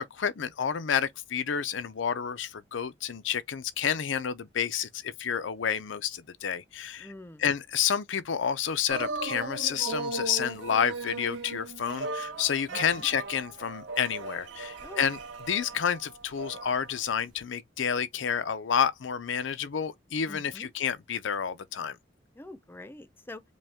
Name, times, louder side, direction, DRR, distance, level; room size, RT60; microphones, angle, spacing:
voice 1, 0.0-7.1 7.4-15.2 15.5-22.0, left 8 dB, 85° left, 0.5 m, -30 dB
voice 2, 7.0-7.4 12.7-13.1 14.8-15.1 20.3-20.7 22.3-23.4, left 1 dB, 10° left, 0.6 m, -45 dB
sound 1, 8.9-17.0 17.4-17.5, right 3 dB, 85° right, 1.2 m, -37 dB
5.1 x 2.2 x 3.5 m
head